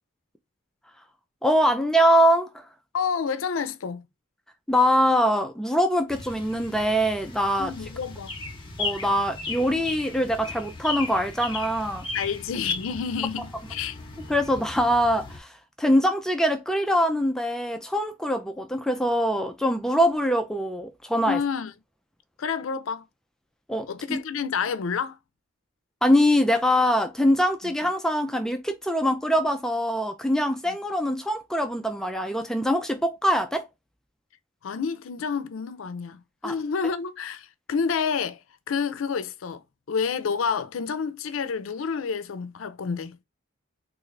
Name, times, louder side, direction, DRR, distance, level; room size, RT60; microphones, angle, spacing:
voice 1, 1.4-2.7 4.7-7.7 8.8-12.1 14.3-21.4 23.7-24.2 26.0-33.7 36.4-36.5, equal, 5° left, 0.3 m, -23 dB
voice 2, 2.9-4.1 7.6-8.3 12.1-14.0 21.3-21.7 22.4-23.1 23.9-25.2 30.7-30.8 34.6-38.4 38.7-43.2, left 6 dB, 75° left, 0.5 m, -29 dB
sound 1, 6.1-15.4, left 3 dB, 25° left, 0.8 m, -36 dB
3.8 x 2.5 x 3.1 m
head